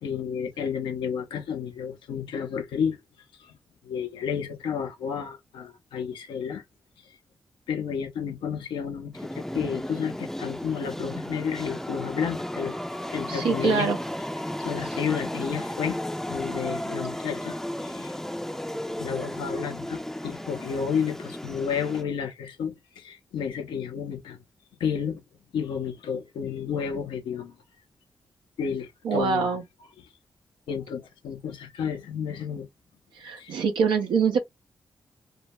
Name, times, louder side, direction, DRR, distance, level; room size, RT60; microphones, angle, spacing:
voice 1, 0.0-3.0 3.8-6.6 7.7-12.8 13.1-13.9 14.6-16.0 16.3-17.6 17.8-18.1 19.0-24.4 24.8-25.2 25.5-27.5 28.6-29.5 30.7-32.7 33.4-33.6, left 7 dB, 85° left, 0.6 m, -31 dB
sound 1, 9.1-22.0, left 1 dB, 5° left, 0.4 m, -34 dB
voice 2, 13.3-14.0 29.0-29.6 33.1-34.4, right 6 dB, 85° right, 0.5 m, -24 dB
2.2 x 2.1 x 3.3 m
supercardioid pair, 45°, 8 cm